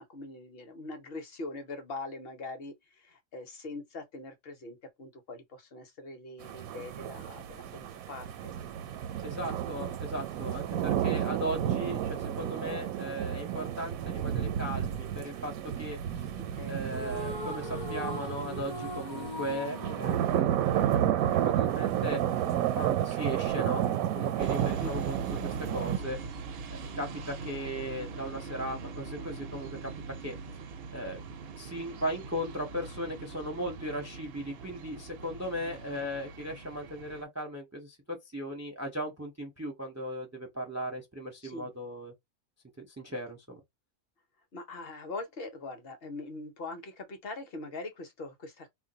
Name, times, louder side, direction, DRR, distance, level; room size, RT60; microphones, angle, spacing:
voice 1, 0.0-8.5 16.3-16.8 24.8-24.9 35.6-36.1 41.4-41.7 44.5-48.7, left 3 dB, 50° left, 0.8 m, -42 dB
sound 1, 6.4-26.0, right 11 dB, 85° right, 1.0 m, -31 dB
voice 2, 9.2-16.3 16.7-22.4 22.8-23.9 24.1-26.2 26.7-29.9 30.2-30.3 30.9-31.2 31.6-42.1 42.8-43.6, equal, 20° right, 0.4 m, -37 dB
sound 2, 16.9-21.3, left 1 dB, 25° left, 0.5 m, -40 dB
sound 3, 24.4-37.2, right 4 dB, 65° right, 0.6 m, -42 dB
2.5 x 2.1 x 3.8 m
omnidirectional pair, 1.4 m